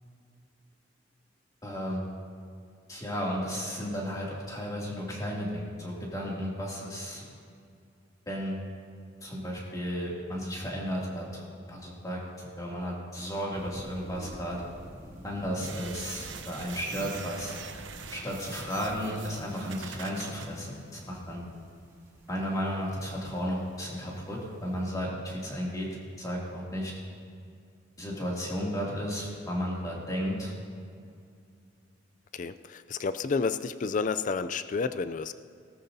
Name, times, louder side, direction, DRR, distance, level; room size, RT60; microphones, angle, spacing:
voice 1, 1.6-2.0 2.9-7.3 8.3-8.6 9.2-14.6 15.2-17.6 18.1-21.4 22.3-27.0 28.0-30.5, equal, 20° left, -4 dB, 2.6 m, -34 dB
sound 1, 13.5-24.9, equal, 15° right, 2.2 m, -51 dB
sound 2, 15.6-20.5, right 5 dB, 85° right, 0.9 m, -42 dB
voice 2, 32.3-35.3, left 4 dB, 45° left, 12 dB, 0.4 m, -30 dB
18.5 x 13.5 x 2.8 m, 2.4 s
head